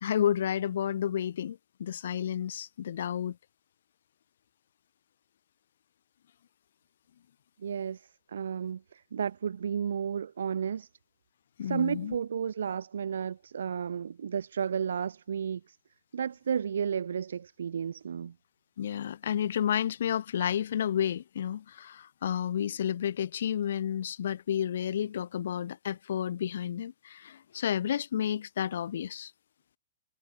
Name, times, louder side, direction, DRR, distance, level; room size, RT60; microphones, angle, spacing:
voice 1, 0.0-3.4 11.6-12.1 18.8-29.3, left 9 dB, 70° left, 0.7 m, -31 dB
voice 2, 7.6-10.9 11.6-15.8 16.1-18.3, right 7 dB, 90° right, 0.6 m, -32 dB
hypercardioid pair, 160°, 0 cm